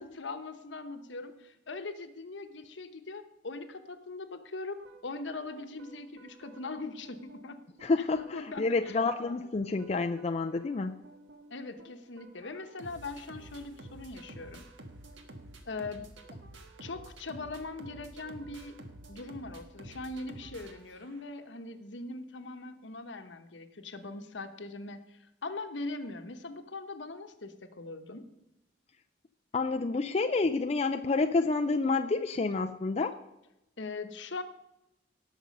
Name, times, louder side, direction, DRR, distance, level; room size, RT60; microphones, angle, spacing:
voice 1, 0.0-7.6 8.3-9.0 11.5-14.7 15.6-16.1 16.8-18.8 19.1-28.3 33.8-34.4, left 3 dB, 75° left, 8 dB, 1.0 m, -41 dB
sound 1, 4.8-21.4, right 1 dB, 85° right, 1.4 m, -51 dB
voice 2, 7.8-11.0 29.5-33.1, left 3 dB, 35° left, 6 dB, 0.4 m, -29 dB
18.0 x 6.1 x 5.3 m, 0.90 s
head